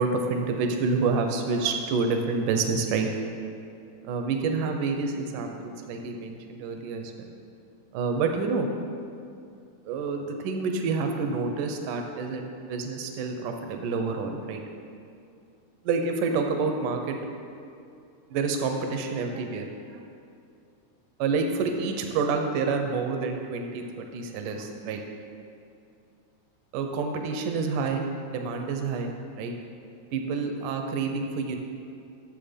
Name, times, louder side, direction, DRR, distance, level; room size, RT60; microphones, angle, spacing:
voice 1, 0.0-3.1 4.0-7.3 7.9-8.7 9.9-14.6 15.8-17.2 18.3-20.0 21.2-25.0 26.7-28.1 28.3-29.5 30.1-31.6, right 4 dB, 85° right, 4 dB, 1.8 m, -28 dB
12.0 x 7.3 x 5.1 m, 2.5 s
omnidirectional pair, 4.7 m